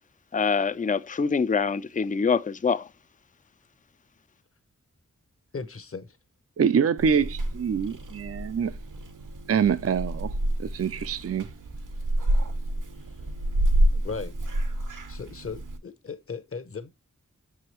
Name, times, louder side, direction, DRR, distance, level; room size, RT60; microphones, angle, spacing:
voice 1, 0.3-2.9, left 5 dB, 25° left, 0.4 m, -25 dB
voice 2, 5.5-6.2 13.9-14.4 15.1-16.9, left 5 dB, 45° left, 0.8 m, -37 dB
voice 3, 6.6-8.7 9.5-10.3 10.6-11.5, right 7 dB, 50° right, 0.4 m, -25 dB
Purr / Meow, 7.0-15.8, right 1 dB, 75° right, 1.0 m, -28 dB
6.9 x 4.8 x 3.0 m
wide cardioid pair, 70°, 31 cm